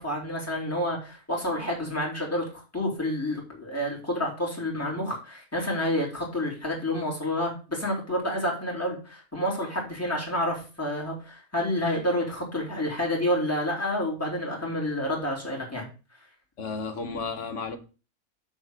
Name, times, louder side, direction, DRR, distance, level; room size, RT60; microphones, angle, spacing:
voice 1, 0.0-15.9, left 1 dB, 10° left, -3 dB, 2.8 m, -29 dB
voice 2, 16.6-17.8, left 4 dB, 60° left, 7 dB, 1.2 m, -33 dB
7.1 x 3.6 x 6.3 m, 0.34 s
omnidirectional pair, 1.5 m